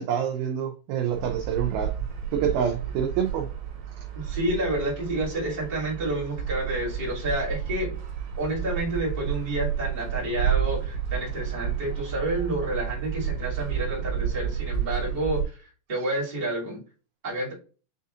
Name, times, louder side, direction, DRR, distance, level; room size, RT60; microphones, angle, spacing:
voice 1, 0.0-1.9 2.3-3.5, right 8 dB, 85° right, 4 dB, 2.1 m, -27 dB
sound 1, 1.1-15.4, right 8 dB, 60° right, 2.5 m, -31 dB
voice 2, 4.1-7.9 8.4-16.8 17.2-17.5, right 1 dB, 20° right, -6 dB, 1.4 m, -29 dB
7.2 x 2.7 x 2.4 m, 0.35 s
omnidirectional pair, 5.0 m